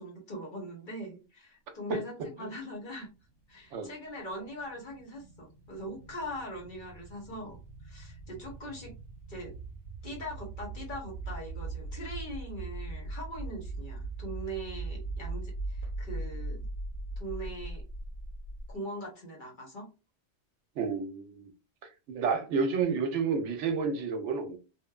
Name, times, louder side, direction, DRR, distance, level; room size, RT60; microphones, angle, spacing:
voice 1, 0.0-3.1 3.5-7.6 7.8-8.9 9.3-9.5 10.0-16.6 17.2-17.8 18.7-19.9, equal, 45° left, 1.0 m, -41 dB
sound 1, 2.9-18.8, right 2 dB, 85° left, 1.4 m, -40 dB
voice 2, 20.8-21.5 22.1-24.6, right 5 dB, 75° right, 0.9 m, -30 dB
2.9 x 2.1 x 2.2 m
omnidirectional pair, 1.3 m